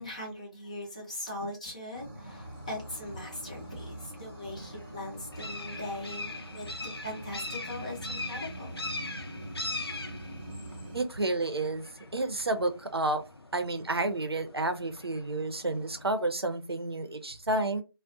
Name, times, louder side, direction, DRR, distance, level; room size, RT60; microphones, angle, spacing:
voice 1, 0.0-8.9, left 1 dB, 15° left, 0.5 m, -40 dB
sound 1, 1.9-11.0, right 1 dB, 25° right, 0.7 m, -43 dB
sound 2, 2.3-16.1, left 2 dB, 80° left, 0.6 m, -42 dB
voice 2, 10.9-11.9 12.1-13.2 13.5-17.8, right 2 dB, 90° right, 0.6 m, -30 dB
2.3 x 2.1 x 2.6 m
figure-of-eight pair, 160°, 13 cm